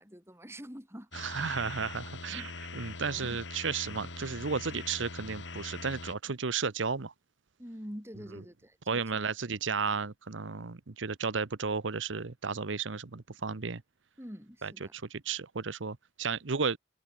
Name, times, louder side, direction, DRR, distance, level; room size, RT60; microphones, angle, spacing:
voice 1, 0.0-1.1 2.3-2.5 3.0-3.4 7.6-9.2 14.2-14.9, equal, 15° right, 7.2 m, -46 dB
sound 1, 1.1-6.1, left 3 dB, 75° left, 5.4 m, -43 dB
voice 2, 1.1-7.1 8.9-13.8 14.6-16.8, right 5 dB, 80° right, 1.0 m, -33 dB
head